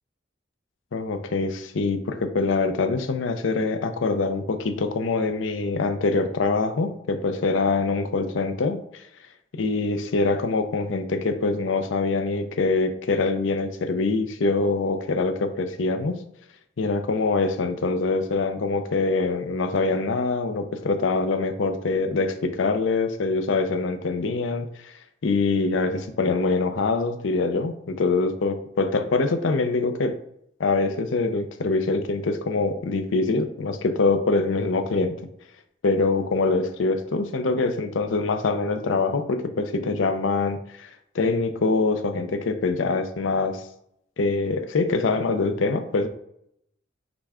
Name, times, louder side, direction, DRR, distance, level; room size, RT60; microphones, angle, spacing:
voice 1, 0.9-9.0 9.6-16.2 16.8-24.9 25.2-30.1 30.6-35.1 35.8-40.9 41.1-43.6 44.2-46.1, left 3 dB, 85° left, 8 dB, 0.5 m, -24 dB
5.9 x 2.2 x 3.5 m, 0.76 s
head